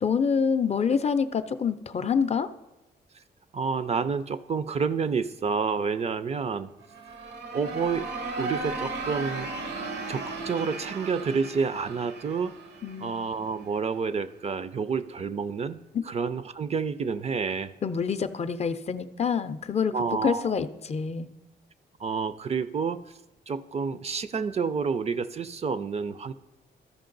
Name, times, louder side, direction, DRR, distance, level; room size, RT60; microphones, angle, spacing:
voice 1, 0.0-2.5 12.8-13.1 15.9-16.0 17.8-19.9 20.2-21.3, left 6 dB, 40° left, 11 dB, 0.4 m, -26 dB
voice 2, 3.5-6.7 7.5-8.1 8.4-9.5 10.1-12.6 13.0-15.8 16.0-17.7 19.9-20.5 22.0-23.0 23.5-26.3, right 5 dB, 40° right, 14 dB, 0.4 m, -29 dB
sound 1, 6.8-13.6, right 3 dB, 80° right, 0.8 m, -36 dB
13.5 x 5.2 x 3.9 m, 1.0 s
cardioid pair, 100°, 17 cm